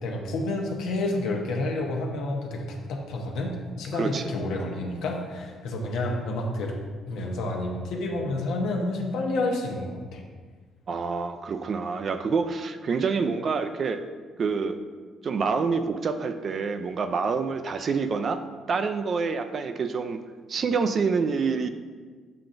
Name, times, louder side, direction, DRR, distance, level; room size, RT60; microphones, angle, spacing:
voice 1, 0.0-6.8 7.1-10.2, left 2 dB, 80° left, 1 dB, 1.0 m, -29 dB
voice 2, 3.9-4.2 10.9-14.0 14.4-14.8 15.2-18.4 18.7-20.2 20.5-21.7, right 5 dB, 45° right, 8 dB, 0.4 m, -27 dB
7.7 x 5.7 x 2.6 m, 1.5 s
cardioid pair, 115°, 0 cm